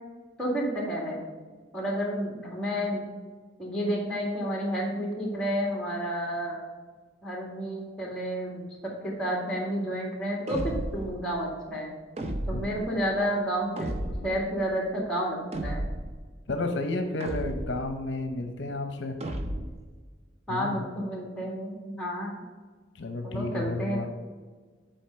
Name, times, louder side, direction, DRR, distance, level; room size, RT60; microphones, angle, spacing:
voice 1, 0.4-1.2 1.7-3.0 3.6-6.7 7.2-8.7 9.0-11.9 12.5-15.8 20.5-22.3 23.2-24.1, equal, 5° left, -3 dB, 2.0 m, -30 dB
sound 1, 10.5-11.1 12.2-12.8 13.8-14.4 15.5-16.2 17.2-17.9 19.2-19.9, right 1 dB, 30° right, 0.6 m, -33 dB
voice 2, 16.5-19.2 20.5-20.8 22.9-24.1, left 2 dB, 65° left, 6 dB, 0.7 m, -31 dB
7.7 x 4.5 x 5.7 m, 1.4 s
head